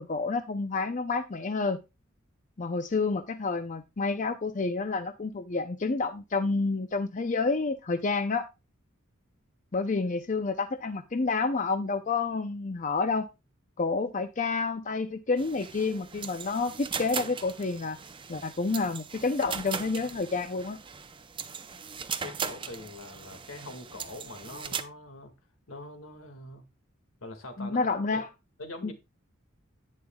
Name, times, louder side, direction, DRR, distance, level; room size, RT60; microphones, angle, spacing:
voice 1, 0.0-1.8 2.6-8.5 9.7-13.3 13.8-18.0 18.3-20.8 27.6-28.3 28.8-28.9, left 4 dB, 35° left, 0.6 m, -29 dB
sound 1, 15.4-24.8, right 6 dB, 25° right, 0.6 m, -39 dB
voice 2, 22.2-25.3 25.7-26.6 27.2-28.2 28.6-28.9, left 2 dB, 80° left, 2.0 m, -43 dB
11.0 x 9.6 x 2.3 m
head